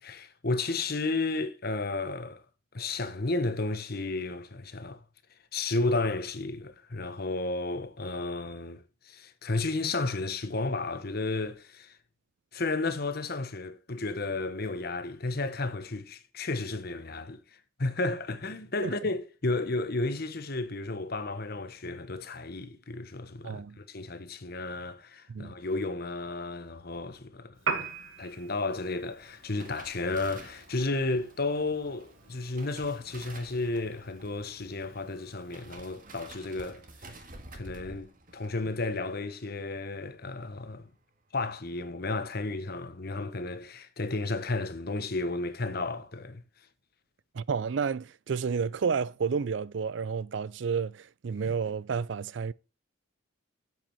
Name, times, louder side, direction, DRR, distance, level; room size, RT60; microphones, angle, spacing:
voice 1, 0.0-2.4 2.7-5.0 5.5-11.9 12.5-17.4 17.8-27.6 28.2-37.2 37.5-40.9 41.3-46.4, left 3 dB, 50° left, 1.2 m, -33 dB
voice 2, 23.4-23.8 25.3-25.5 47.3-52.5, right 6 dB, 65° right, 0.4 m, -31 dB
Piano, 27.6-35.6, right 5 dB, 85° right, 1.7 m, -42 dB
sound 1, 29.2-40.6 40.9-41.2 41.5-41.9 42.2-42.3, right 2 dB, 45° right, 1.7 m, -51 dB
7.7 x 7.4 x 6.1 m
head